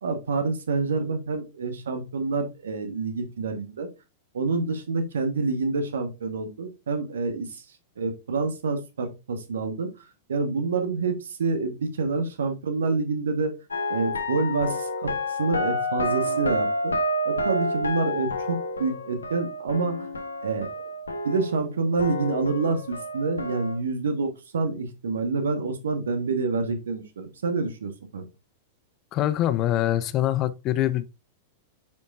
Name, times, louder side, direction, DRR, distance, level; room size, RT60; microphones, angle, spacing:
voice 1, 0.0-3.9 4.3-7.6 8.0-9.9 10.3-13.5 13.9-15.1 15.4-16.9 17.2-20.1 20.4-20.7 21.2-28.3, right 4 dB, 65° right, 1.5 m, -27 dB
sound 1, 13.7-21.7 22.0-23.8, left 1 dB, 75° left, 1.2 m, -29 dB
voice 2, 29.1-31.0, left 13 dB, 35° left, 0.5 m, -24 dB
9.2 x 5.2 x 2.6 m
figure-of-eight pair, 95°, 0 cm